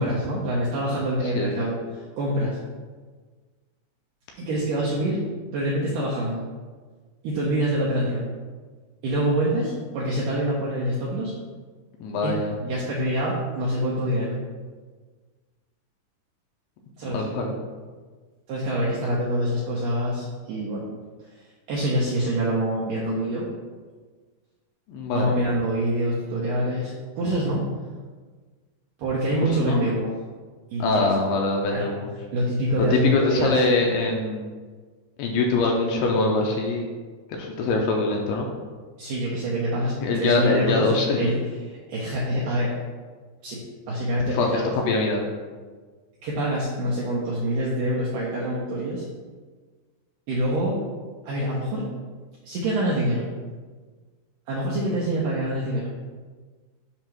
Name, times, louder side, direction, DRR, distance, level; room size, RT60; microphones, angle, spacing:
voice 1, 0.0-1.8 2.2-2.6 4.4-5.2 5.5-6.4 7.2-8.2 9.0-11.3 12.2-12.4 12.6-14.4 17.0-17.3 18.5-20.9 21.7-23.5 25.1-27.6 29.0-30.1 30.7-31.1 31.7-31.9 32.3-33.6 39.0-40.9 41.2-41.4 41.9-42.7 43.4-43.6 43.9-44.7 46.2-49.0 50.3-50.8 51.2-51.9 52.5-53.3 54.5-55.9, right 1 dB, 80° right, -6 dB, 1.9 m, -25 dB
voice 2, 12.0-12.6 17.1-17.5 24.9-25.3 29.5-29.8 30.8-32.1 32.8-34.4 35.2-36.9 37.3-38.5 40.0-41.3 44.3-45.3, left 3 dB, 80° left, 1 dB, 2.5 m, -23 dB
7.2 x 2.9 x 5.9 m, 1.4 s
omnidirectional pair, 5.0 m